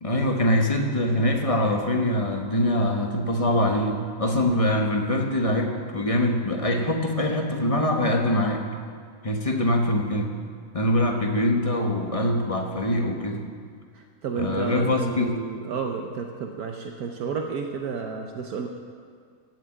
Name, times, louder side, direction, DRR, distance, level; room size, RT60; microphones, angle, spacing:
voice 1, 0.0-8.7 9.2-10.3 10.7-13.5 14.3-15.3, left 1 dB, 25° left, 2 dB, 1.2 m, -23 dB
voice 2, 13.9-18.7, right 5 dB, 70° right, 3 dB, 1.4 m, -31 dB
15.0 x 7.6 x 9.0 m, 2.1 s
omnidirectional pair, 1.7 m